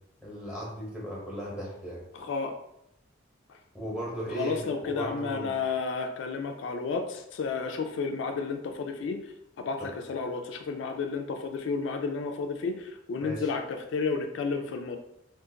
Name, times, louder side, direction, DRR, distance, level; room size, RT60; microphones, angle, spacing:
voice 1, 0.2-2.0 3.7-5.5 9.8-9.9 13.2-13.5, right 1 dB, 5° right, -5 dB, 0.9 m, -36 dB
voice 2, 2.1-2.6 3.5-3.6 4.3-15.0, left 4 dB, 65° left, 5 dB, 0.3 m, -32 dB
2.5 x 2.4 x 3.8 m, 0.79 s
head